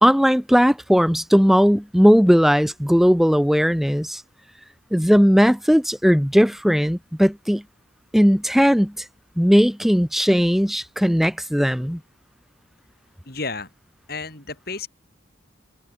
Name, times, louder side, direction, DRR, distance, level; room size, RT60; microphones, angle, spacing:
voice 1, 0.0-4.2 4.9-7.6 8.1-8.9 9.4-12.0, equal, ahead, 0.8 m, -17 dB
voice 2, 13.3-13.7 14.1-14.9, left 3 dB, 50° left, 5.1 m, -31 dB
head